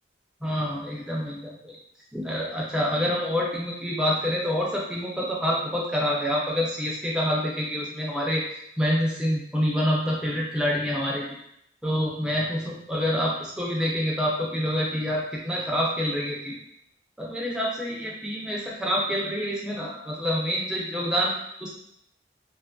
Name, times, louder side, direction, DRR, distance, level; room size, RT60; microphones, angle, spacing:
voice 1, 0.4-1.7 2.1-8.4 8.8-11.2 11.8-16.5 17.2-21.7, equal, 5° right, -4 dB, 0.4 m, -27 dB
2.5 x 2.5 x 2.3 m, 0.75 s
head